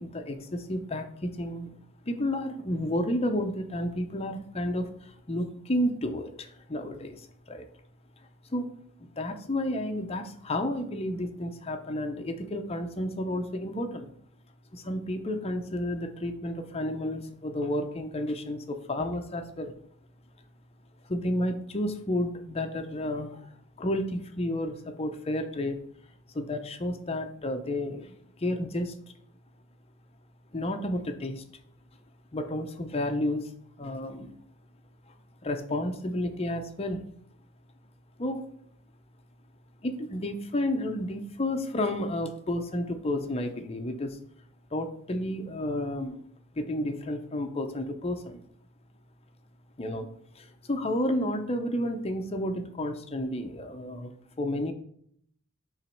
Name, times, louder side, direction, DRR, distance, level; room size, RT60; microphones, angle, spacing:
voice 1, 0.0-1.7 2.1-7.7 8.5-8.7 9.0-14.1 14.7-19.7 21.1-25.8 26.3-28.9 30.5-31.4 32.3-33.5 33.8-34.3 35.1-35.2 35.4-37.0 38.2-38.4 39.8-44.2 44.7-46.2 46.5-48.4 49.8-50.1 50.4-54.7, left 1 dB, 25° left, 6 dB, 0.5 m, -31 dB
7.1 x 3.0 x 5.7 m, 0.66 s
head